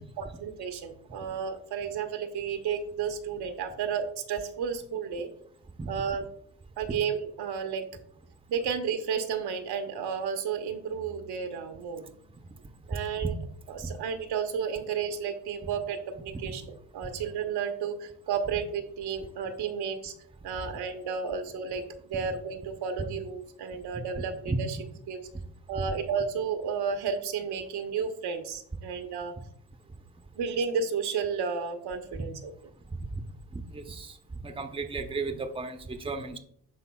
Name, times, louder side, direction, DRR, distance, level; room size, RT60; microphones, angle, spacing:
voice 1, 0.2-5.3 5.9-6.3 6.8-7.9 8.5-12.0 12.9-13.3 13.7-20.1 20.4-21.8 22.1-24.8 25.1-25.2 25.7-29.3 30.3-32.5, right 6 dB, 65° right, 6 dB, 1.0 m, -32 dB
sound 1, 10.9-13.9, left 1 dB, 65° left, 1.5 m, -56 dB
voice 2, 23.9-24.6 25.8-25.9 33.5-34.1 34.4-36.4, right 3 dB, 15° right, 6 dB, 0.8 m, -34 dB
11.5 x 3.9 x 2.3 m, 0.66 s
hypercardioid pair, 60°, 43 cm